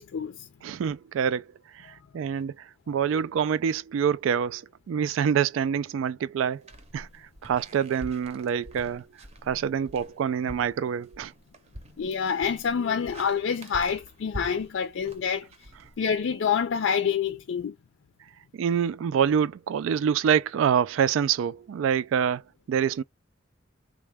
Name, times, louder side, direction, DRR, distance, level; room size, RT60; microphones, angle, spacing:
voice 1, 0.0-0.5 1.9-2.0 12.0-15.5 16.0-17.8, left 7 dB, 75° left, 0.4 m, -27 dB
voice 2, 0.6-1.5 1.7-6.6 6.9-9.1 9.4-11.3 18.5-23.0, right 8 dB, 80° right, 0.3 m, -26 dB
sound 1, 6.6-16.5, right 1 dB, 35° right, 0.7 m, -45 dB
3.5 x 2.2 x 3.4 m
head